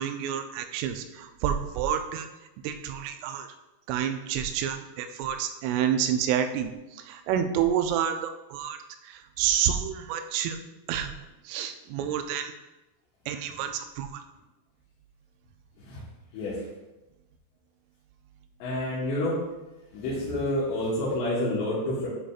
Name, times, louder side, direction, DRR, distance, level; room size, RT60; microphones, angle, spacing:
voice 1, 0.0-2.3 2.6-3.5 3.9-8.8 9.0-10.6 10.9-11.1 11.5-12.5 13.3-14.2, right 9 dB, 85° right, 7 dB, 3.1 m, -29 dB
voice 2, 18.6-19.4 19.9-22.1, left 1 dB, 70° left, -9 dB, 3.1 m, -28 dB
10.0 x 4.9 x 2.4 m, 1.0 s
omnidirectional pair, 5.7 m